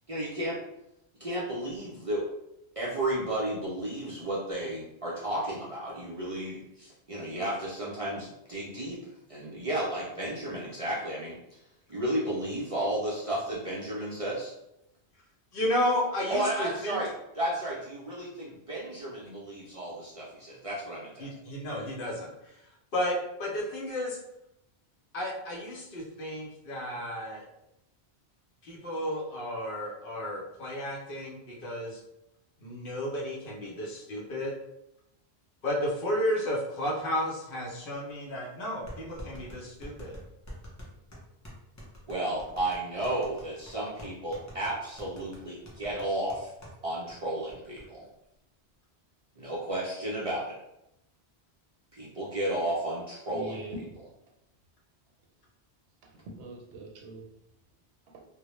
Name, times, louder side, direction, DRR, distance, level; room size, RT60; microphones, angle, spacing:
voice 1, 0.1-0.6 1.2-2.2 2.8-9.0 9.3-11.4 11.9-14.5 16.3-21.3 42.1-46.5 46.8-48.0 49.4-50.5 51.9-53.6, right 1 dB, 50° right, -6 dB, 0.4 m, -33 dB
voice 2, 15.5-17.0 21.2-22.5 22.9-24.2 25.1-27.4 28.6-32.0 32.6-34.5 35.6-40.1, left 1 dB, 60° left, -3 dB, 0.8 m, -32 dB
sound 1, 38.9-46.8 47.1-47.2 47.5-47.8, equal, 25° left, 0.3 m, -46 dB
voice 3, 53.3-54.0 56.0-57.3 58.1-58.2, right 1 dB, 90° right, 1 dB, 0.9 m, -43 dB
2.1 x 2.0 x 2.9 m, 0.84 s
omnidirectional pair, 1.1 m